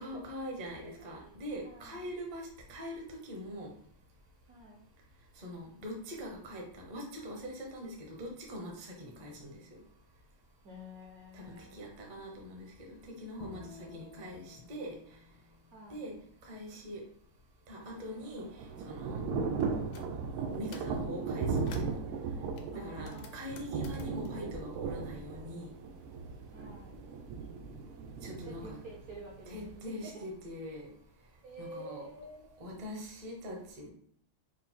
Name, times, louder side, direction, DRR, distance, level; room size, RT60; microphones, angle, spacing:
voice 1, 0.0-3.7 5.4-9.8 11.3-13.6 13.9-14.9 15.9-16.1 16.4-17.0 17.7-18.5 18.9-19.2 20.5-22.0 22.7-25.7 28.2-28.8 29.5-30.9 31.6-32.0 32.6-33.9, equal, 40° right, -1 dB, 0.6 m, -43 dB
voice 2, 1.2-2.0 4.5-4.8 10.6-12.4 13.8-14.0 15.7-16.0 22.7-23.7 26.5-26.9 28.3-30.2 31.4-32.9, right 1 dB, 65° right, -2 dB, 0.9 m, -50 dB
Bowed string instrument, 13.4-16.7, left 4 dB, 85° left, 0.8 m, -55 dB
Thunder / Rain, 17.9-29.8, right 4 dB, 90° right, 1.5 m, -37 dB
sound 1, 19.6-20.1 20.5-21.0 21.4-22.0 22.6-25.5 25.8-26.9, left 5 dB, 70° left, 1.1 m, -55 dB
5.1 x 2.0 x 4.4 m, 0.66 s
omnidirectional pair, 2.3 m